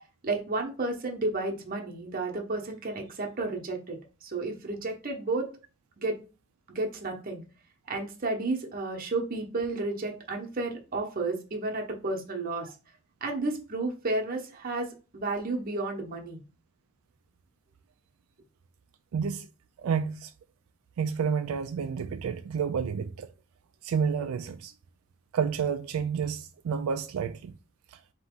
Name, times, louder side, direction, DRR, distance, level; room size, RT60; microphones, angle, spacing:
voice 1, 0.2-5.5 6.0-6.2 6.7-7.4 7.9-12.7 13.2-14.9 15.1-16.4, right 2 dB, 40° right, 0.9 m, -32 dB
voice 2, 19.1-19.5 19.8-20.3 21.0-23.3 23.8-24.7 25.3-27.5, right 6 dB, 85° right, 0.3 m, -30 dB
4.0 x 2.9 x 3.6 m
head